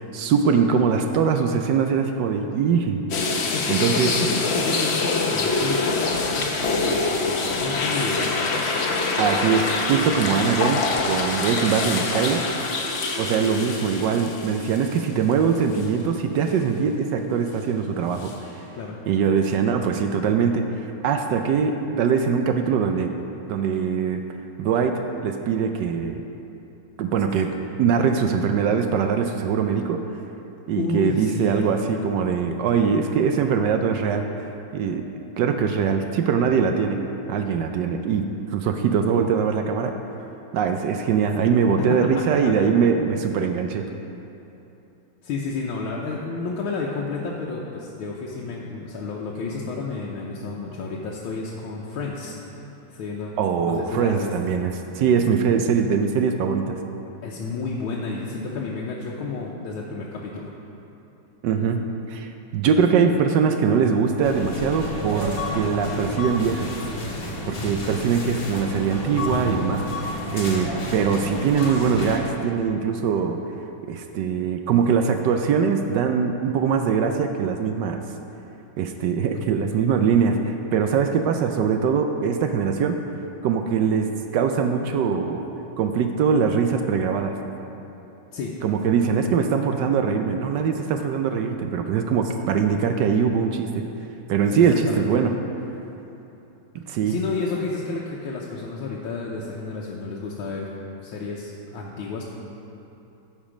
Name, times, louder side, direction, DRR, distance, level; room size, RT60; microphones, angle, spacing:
voice 1, 0.0-3.0 3.7-4.3 9.2-12.4 13.2-18.3 19.1-20.6 21.0-23.1 23.5-24.2 24.6-26.2 27.0-27.5 27.8-30.0 30.7-34.2 34.7-35.1 35.4-37.0 37.3-39.9 40.5-43.8 53.4-56.8 61.4-66.7 67.5-69.8 70.3-73.4 73.9-78.0 78.8-83.0 83.4-85.4 85.8-87.3 88.6-93.7 94.3-95.3 96.9-97.1, right 6 dB, 75° right, 5 dB, 1.1 m, -22 dB
sound 1, 3.1-15.3 15.7-15.9 18.2-18.3, left 3 dB, 65° left, 0.6 m, -25 dB
voice 2, 3.5-8.7 18.7-19.0 30.8-31.9 41.8-42.5 45.2-52.5 52.9-53.4 53.6-54.3 57.2-60.5 88.3-88.6 94.5-95.1 97.1-100.7 101.0-102.2, left 3 dB, 90° left, -3 dB, 1.6 m, -31 dB
sound 2, 64.2-72.2, left 1 dB, 50° left, 1.6 m, -30 dB
13.5 x 5.2 x 5.0 m, 3.0 s
omnidirectional pair, 2.2 m